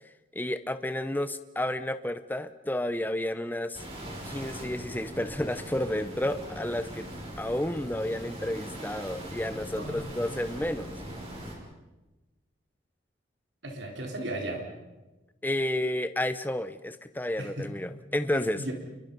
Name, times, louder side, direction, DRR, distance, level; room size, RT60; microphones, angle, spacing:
voice 1, 0.3-3.8 4.2-7.1 7.4-11.0 15.4-18.6, left 1 dB, 10° left, 11 dB, 0.8 m, -31 dB
sound 1, 3.7-11.5, equal, 30° right, 5.8 m, -41 dB
voice 2, 9.8-10.1 13.6-14.6 17.4-17.7 18.5-18.7, right 1 dB, 65° right, 1 dB, 3.7 m, -35 dB
29.0 x 23.0 x 5.4 m, 1.1 s
head